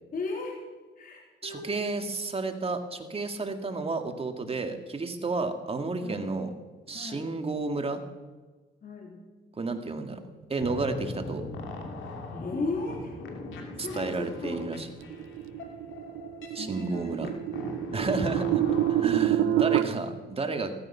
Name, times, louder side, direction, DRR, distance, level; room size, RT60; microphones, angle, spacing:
voice 1, 0.1-0.6 1.0-1.8 6.0-6.3 6.9-7.3 8.8-9.2 12.3-13.2 13.8-14.6 16.5-17.5 18.6-18.7 19.4-19.7, left 3 dB, 45° left, -1 dB, 3.4 m, -36 dB
voice 2, 1.4-6.5 6.9-8.0 9.6-10.2 10.5-11.4 13.8-14.9 16.5-17.3 17.9-18.6 18.9-20.7, right 3 dB, 30° right, 6 dB, 2.1 m, -31 dB
sound 1, 10.6-19.2, left 2 dB, 80° left, 3.0 m, -40 dB
sound 2, 15.1-19.8, right 12 dB, 90° right, 0.8 m, -27 dB
16.0 x 14.5 x 5.8 m, 1.3 s
cardioid pair, 90°, 20 cm